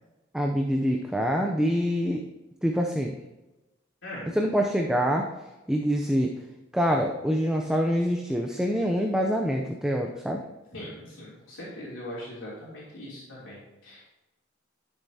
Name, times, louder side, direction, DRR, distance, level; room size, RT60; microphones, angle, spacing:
voice 1, 0.3-2.2 2.6-3.1 4.3-5.3 5.7-6.3 6.7-10.4, equal, 5° right, 1 dB, 0.6 m, -25 dB
voice 2, 10.7-14.0, left 1 dB, 75° left, -7 dB, 3.2 m, -40 dB
11.5 x 7.1 x 2.8 m, 1.0 s
head